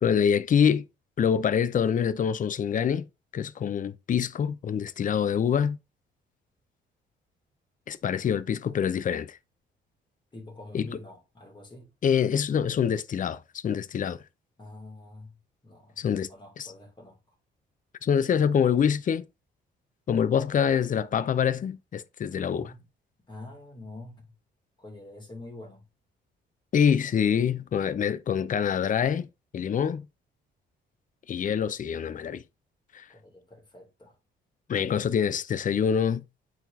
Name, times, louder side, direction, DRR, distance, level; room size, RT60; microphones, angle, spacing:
voice 1, 0.0-0.9 1.2-3.1 3.3-5.8 7.9-9.4 10.7-10.9 12.0-14.2 16.0-16.3 16.6-16.7 18.0-19.2 20.1-22.7 26.7-29.3 29.5-30.1 31.3-32.4 32.9-33.0 34.7-36.2, left 7 dB, 40° left, 0.6 m, -25 dB
voice 2, 10.3-11.9 14.6-15.4 15.6-17.4 22.5-22.8 23.3-24.3 24.8-25.9 33.1-34.2, left 2 dB, 25° left, 2.8 m, -46 dB
8.8 x 4.1 x 2.7 m
cardioid pair, 90°, 20 cm